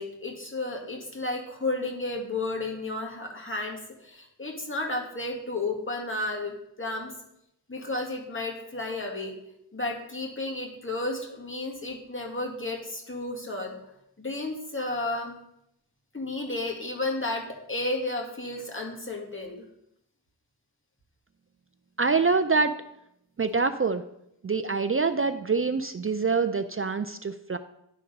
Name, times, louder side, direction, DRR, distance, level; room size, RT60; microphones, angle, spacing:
voice 1, 0.0-7.1 7.7-9.3 9.7-13.7 14.2-15.4 16.1-19.6, left 2 dB, 25° left, 0 dB, 2.1 m, -32 dB
voice 2, 22.0-22.7 23.4-24.0 24.4-27.6, right 4 dB, 30° right, 10 dB, 0.4 m, -25 dB
11.0 x 3.8 x 5.3 m, 0.79 s
wide cardioid pair, 70°, 44 cm